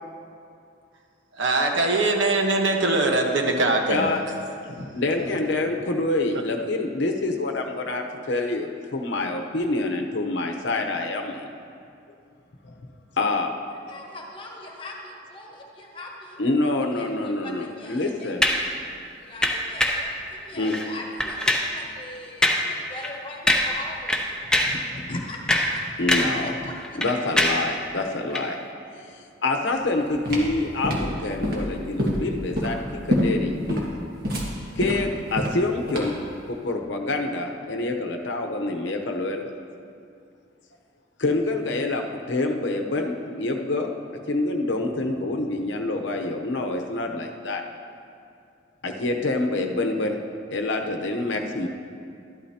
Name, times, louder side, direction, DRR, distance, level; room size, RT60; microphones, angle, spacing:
voice 1, 1.3-4.1, right 2 dB, 75° right, 1 dB, 1.2 m, -22 dB
voice 2, 3.9-4.2 4.7-11.5 12.6-12.8 13.2-13.5 16.4-18.4 20.6-20.7 24.9-25.2 26.0-26.6 27.0-28.6 29.4-33.8 34.8-36.2 36.5-39.5 41.2-43.9 44.3-47.6 48.8-50.2 50.5-51.7, left 2 dB, 70° left, 3 dB, 0.8 m, -26 dB
voice 3, 13.7-16.4 16.9-18.4 19.0-25.8 26.1-27.0, left 2 dB, 25° left, -1 dB, 1.2 m, -41 dB
sound 1, 18.4-18.7 19.4-20.1 20.6-20.9 21.2-21.7 22.4-22.7 23.0-23.2 23.5-23.8 24.1-24.8 25.3-26.4 26.7-27.7 28.3-28.5, left 1 dB, 5° left, 0.6 m, -23 dB
sound 2, 29.8-36.3, equal, 50° right, 1.7 m, -27 dB
13.0 x 11.5 x 2.8 m, 2.4 s
head